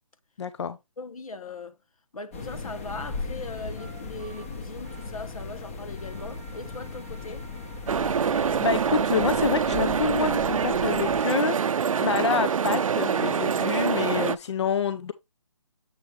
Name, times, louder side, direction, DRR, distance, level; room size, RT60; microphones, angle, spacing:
voice 1, 0.4-0.8 7.9-15.1, left 6 dB, 55° left, 0.6 m, -28 dB
voice 2, 1.0-1.8 2.1-7.5, left 3 dB, 85° left, 1.2 m, -39 dB
sound 1, 2.3-11.2, left 3 dB, 25° left, 1.0 m, -37 dB
sound 2, 3.7-9.0, right 5 dB, 15° right, 0.7 m, -55 dB
sound 3, 7.9-14.4, right 7 dB, 75° right, 0.5 m, -25 dB
7.6 x 4.4 x 3.3 m
hypercardioid pair, 170°, 17 cm